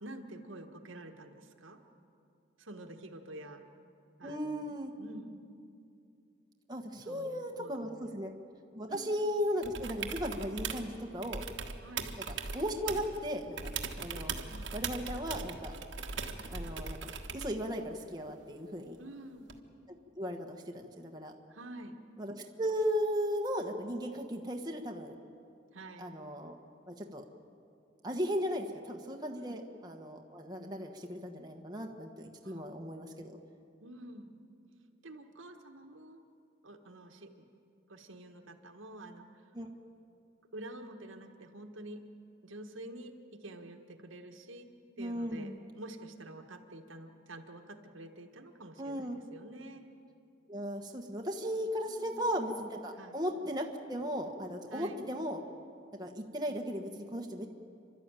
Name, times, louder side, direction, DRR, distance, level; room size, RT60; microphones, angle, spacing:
voice 1, 0.0-1.8 2.6-3.6 4.2-4.7 5.0-5.5 7.1-8.1 8.9-9.2 11.8-12.1 14.5-14.7 19.0-19.5 21.5-22.0 25.7-26.1 29.3-29.6 32.4-32.7 33.8-34.3 35.0-36.2 36.6-37.3 37.9-39.3 40.5-42.0 42.4-44.7 45.0-49.9 51.9-52.3 52.9-53.2 54.7-55.0, right 1 dB, 85° right, 4 dB, 1.6 m, -48 dB
voice 2, 4.2-4.9 6.7-8.3 8.7-11.5 12.5-13.6 14.0-14.3 14.7-15.7 16.5-19.0 19.9-21.3 22.2-25.1 26.0-26.6 26.9-27.2 28.0-33.4 39.5-39.7 45.0-45.6 48.8-49.2 50.5-55.4 56.0-57.5, equal, 20° right, 2 dB, 1.3 m, -36 dB
sound 1, 9.6-10.9 11.2-13.2 13.6-17.6 19.5-19.6, right 5 dB, 70° right, 1.4 m, -39 dB
29.5 x 12.5 x 9.1 m, 2.5 s
head